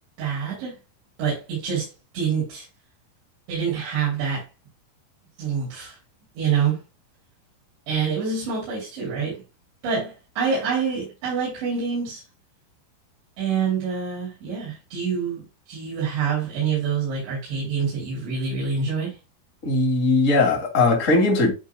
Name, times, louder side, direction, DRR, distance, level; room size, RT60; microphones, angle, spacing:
voice 1, 0.2-0.8 1.2-2.7 3.5-4.4 5.4-5.9 6.3-6.8 7.9-9.4 9.8-12.2 13.4-19.2, right 6 dB, 90° right, 5.2 m, -26 dB
voice 2, 19.6-21.5, left 3 dB, 25° left, 1.8 m, -19 dB
10.5 x 4.5 x 2.2 m
omnidirectional pair, 5.0 m